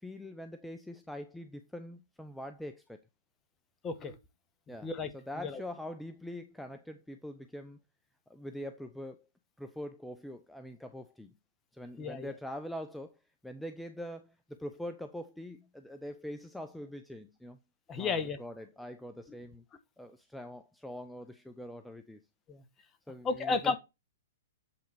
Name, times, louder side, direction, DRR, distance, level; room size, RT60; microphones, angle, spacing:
voice 1, 0.0-3.0 4.7-7.8 8.3-9.3 9.6-11.3 11.7-13.2 13.4-17.6 18.0-19.6 20.0-22.2 23.1-23.8, left 1 dB, 5° left, 0.6 m, -43 dB
voice 2, 3.8-4.2 4.8-5.1 5.4-5.6 12.0-12.3 17.9-18.4 22.5-22.6 23.2-23.8, left 4 dB, 20° left, 1.2 m, -33 dB
8.5 x 3.9 x 4.6 m
hypercardioid pair, 125°, 0 cm